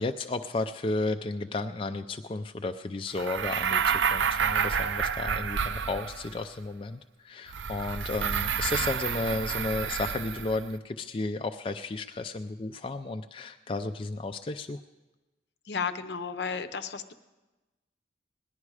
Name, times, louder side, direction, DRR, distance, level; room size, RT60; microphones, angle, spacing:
voice 1, 0.0-14.8, left 3 dB, 30° left, 7 dB, 0.3 m, -33 dB
sound 1, 3.2-6.4 7.5-10.7, right 7 dB, 85° right, 0.5 m, -29 dB
voice 2, 15.6-17.1, left 5 dB, 65° left, 11 dB, 0.7 m, -33 dB
18.0 x 11.0 x 4.8 m, 1.1 s
head